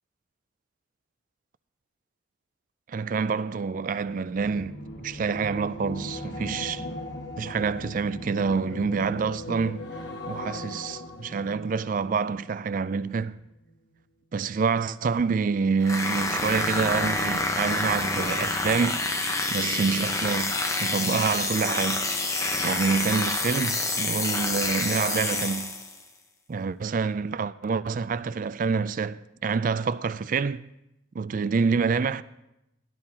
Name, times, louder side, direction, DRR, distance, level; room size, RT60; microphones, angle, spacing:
voice 1, 2.9-6.9 7.4-9.9 10.3-13.4 14.3-19.1 19.5-22.1 22.6-25.7 26.5-30.6 31.2-32.2, right 5 dB, 40° right, 0.3 m, -27 dB
sound 1, 3.9-13.3 13.6-13.9, left 1 dB, 55° left, 1.2 m, -39 dB
sound 2, 15.8-26.0, left 2 dB, 15° left, 0.6 m, -27 dB
17.5 x 12.5 x 2.8 m
head